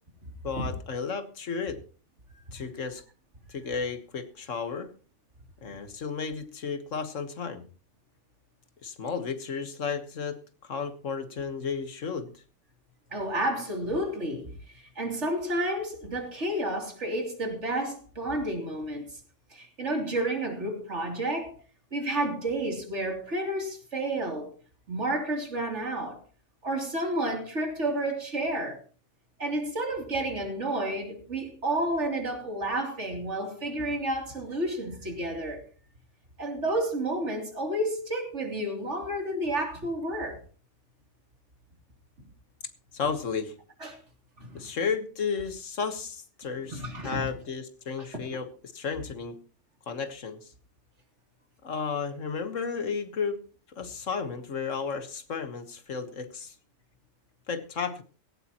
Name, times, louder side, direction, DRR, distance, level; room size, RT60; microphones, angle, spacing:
voice 1, 0.4-1.8 2.5-3.0 3.5-4.9 5.6-7.7 8.8-12.4 42.9-43.5 44.5-48.5 48.7-49.4 49.9-50.5 51.6-53.4 53.7-56.6 57.5-58.0, left 5 dB, 85° left, 1.8 m, -33 dB
voice 2, 13.1-19.2 19.5-21.5 21.9-24.5 24.9-26.2 26.6-28.8 29.4-35.6 36.4-40.4 43.8-44.0 44.4-44.7 46.7-47.3 48.1-48.2, right 1 dB, 65° right, 3.5 m, -31 dB
17.0 x 17.0 x 3.0 m
omnidirectional pair, 1.3 m